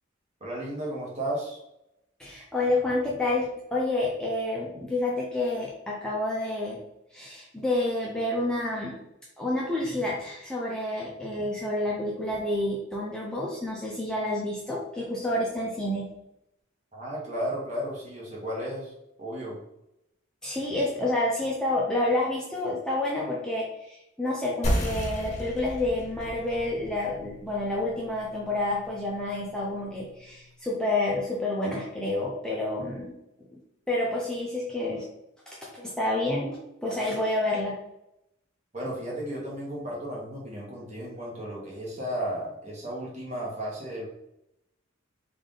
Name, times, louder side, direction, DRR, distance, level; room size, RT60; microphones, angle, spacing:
voice 1, 0.4-1.6 16.9-18.9 19.2-19.6 38.7-44.1, right 1 dB, 35° right, -4 dB, 1.2 m, -34 dB
voice 2, 2.2-6.8 7.1-9.0 9.4-16.1 20.4-33.1 33.5-33.6 33.9-35.1 35.5-37.8, left 1 dB, 5° left, -4 dB, 0.4 m, -29 dB
sound 1, 24.6-29.8, equal, 35° left, 0.7 m, -34 dB
3.4 x 2.5 x 3.7 m, 0.84 s
head